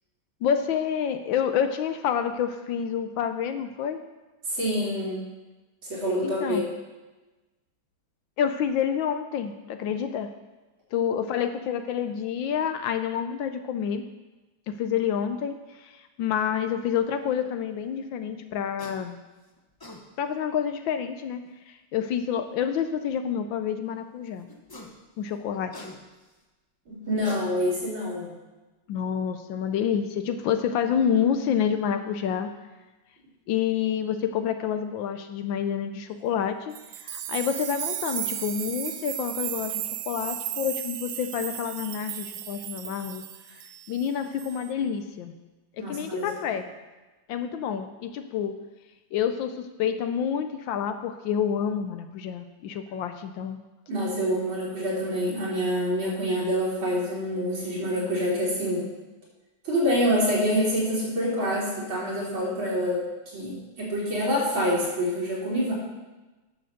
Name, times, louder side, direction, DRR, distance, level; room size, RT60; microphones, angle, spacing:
voice 1, 0.4-4.0 6.2-6.7 8.4-10.3 10.9-14.0 14.7-19.2 20.2-24.5 25.2-25.9 28.9-32.5 33.5-43.2 43.5-45.3 45.8-46.7 47.3-48.5 49.1-53.6, left 8 dB, 75° left, 8 dB, 1.3 m, -28 dB
voice 2, 4.5-5.2 5.9-6.6 26.9-28.3 45.8-46.2 53.9-58.9 59.6-65.7, equal, 70° right, -6 dB, 4.2 m, -26 dB
sound 1, 18.8-19.0 19.6-20.0 21.4-21.5 24.5-25.0 25.3-26.3 27.0-27.9, left 2 dB, 25° left, 0.5 m, -43 dB
sound 2, 36.7-44.1 44.4-44.7, right 11 dB, 90° right, 1.5 m, -35 dB
10.0 x 6.8 x 6.5 m, 1.1 s
omnidirectional pair, 2.3 m